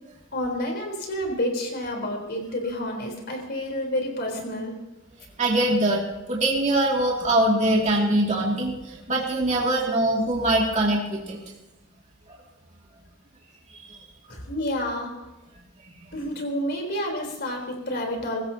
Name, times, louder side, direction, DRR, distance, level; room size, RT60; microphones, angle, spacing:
voice 1, 0.3-4.7 14.3-15.1 16.1-18.4, left 1 dB, 55° left, 1 dB, 4.1 m, -29 dB
voice 2, 5.4-6.0 6.3-8.8 9.1-11.4, right 1 dB, 35° right, -3 dB, 2.6 m, -22 dB
22.5 x 15.0 x 2.9 m, 1.0 s
head